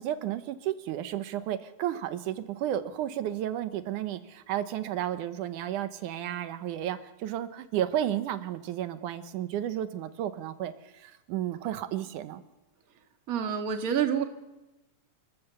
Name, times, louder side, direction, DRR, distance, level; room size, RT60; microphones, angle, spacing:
voice 1, 0.0-12.4, right 11 dB, 80° right, 11 dB, 2.4 m, -32 dB
voice 2, 13.3-14.2, right 8 dB, 35° right, 5 dB, 1.5 m, -27 dB
28.5 x 14.0 x 6.8 m, 1.0 s
omnidirectional pair, 3.6 m